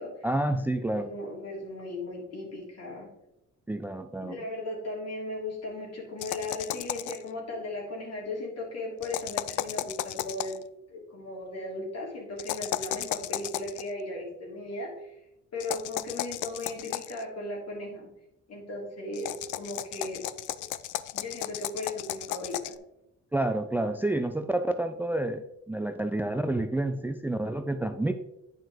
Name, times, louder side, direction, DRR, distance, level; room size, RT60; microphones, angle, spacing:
voice 1, 0.2-1.1 3.7-4.4 23.3-28.1, right 1 dB, 5° right, 9 dB, 0.4 m, -29 dB
voice 2, 0.9-3.1 4.2-10.6 10.9-15.2 15.5-18.1 18.5-20.2 20.6-20.7 21.1-22.8, left 2 dB, 55° left, -2 dB, 3.3 m, -37 dB
sound 1, 6.2-7.3 9.0-10.6 12.4-13.8 15.6-17.2 19.1-22.8, left 14 dB, 80° left, 0.5 m, -34 dB
9.1 x 5.7 x 3.6 m, 0.87 s
cardioid pair, 90°, 30 cm